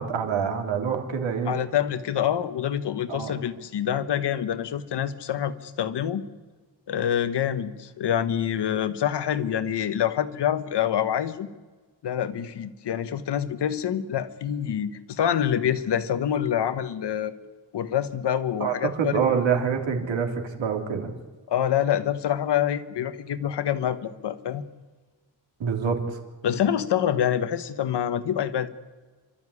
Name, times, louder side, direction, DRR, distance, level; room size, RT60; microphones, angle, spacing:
voice 1, 0.0-1.6 3.1-3.3 18.6-21.1 25.6-26.2, right 6 dB, 80° right, 5 dB, 3.3 m, -26 dB
voice 2, 1.5-6.2 6.9-11.5 12.0-17.3 17.7-19.2 21.5-24.6 26.4-28.7, left 9 dB, 65° left, 12 dB, 1.3 m, -26 dB
28.5 x 13.0 x 9.9 m, 1.4 s
wide cardioid pair, 155°, 45 cm